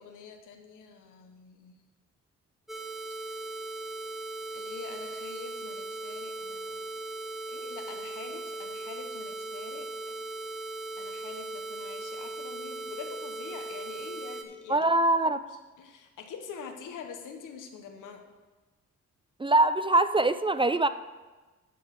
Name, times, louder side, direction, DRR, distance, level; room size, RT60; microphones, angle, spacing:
voice 1, 0.0-1.8 3.2-3.5 4.5-7.0 7.5-10.2 11.0-14.9 15.2-18.3, left 6 dB, 85° left, 5 dB, 1.1 m, -45 dB
sound 1, 2.7-14.4, right 2 dB, ahead, 1.0 m, -38 dB
voice 2, 14.7-15.4 19.4-20.9, right 2 dB, 15° right, 12 dB, 0.4 m, -23 dB
11.5 x 3.9 x 6.9 m, 1.2 s
cardioid pair, 60°, 30 cm